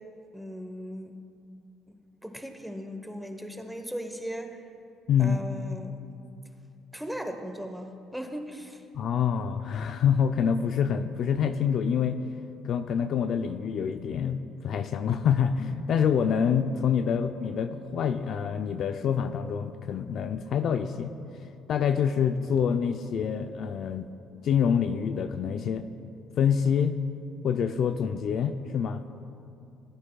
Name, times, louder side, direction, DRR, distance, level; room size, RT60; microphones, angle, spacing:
voice 1, 0.3-1.1 1.9-2.0 2.2-4.6 5.2-6.0 6.9-8.8, equal, ahead, 5 dB, 0.9 m, -37 dB
voice 2, 5.1-5.4 8.9-12.2 12.6-21.1 21.7-24.1 24.4-25.9 26.4-27.0 27.4-29.0, left 7 dB, 55° left, 8 dB, 0.4 m, -26 dB
18.0 x 9.9 x 2.3 m, 2.6 s
cardioid pair, 120°, 0 cm